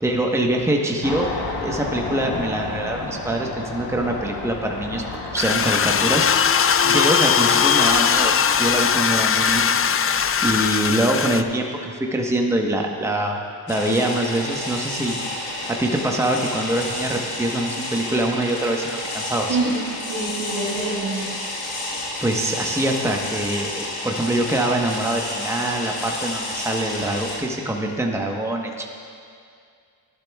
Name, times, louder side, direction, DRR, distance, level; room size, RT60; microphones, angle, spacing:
voice 1, 0.0-1.3 1.6-8.3 8.6-9.7 10.4-13.4 13.7-15.2 15.7-19.6 22.2-28.8, right 1 dB, 5° right, 1 dB, 1.1 m, -24 dB
sound 1, 1.0-9.0, left 3 dB, 50° left, 1.6 m, -33 dB
sound 2, 5.4-11.4, left 7 dB, 30° left, 0.4 m, -19 dB
sound 3, 13.7-27.4, left 2 dB, 90° left, 1.8 m, -30 dB
voice 2, 19.5-21.3, right 3 dB, 70° right, -8 dB, 2.0 m, -26 dB
13.5 x 11.5 x 2.4 m, 2.3 s
supercardioid pair, 45°, 49 cm